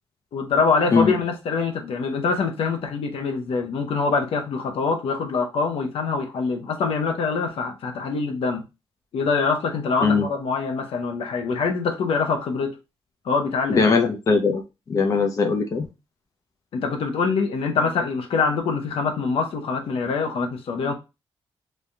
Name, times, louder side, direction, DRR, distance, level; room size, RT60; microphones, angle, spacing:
voice 1, 0.3-8.6 9.1-12.8 13.2-14.0 16.7-20.9, left 4 dB, 75° left, 0.9 m, -24 dB
voice 2, 13.7-14.6 14.9-15.9, left 4 dB, 35° left, 0.6 m, -20 dB
3.4 x 2.7 x 3.3 m
wide cardioid pair, 170°, 10 cm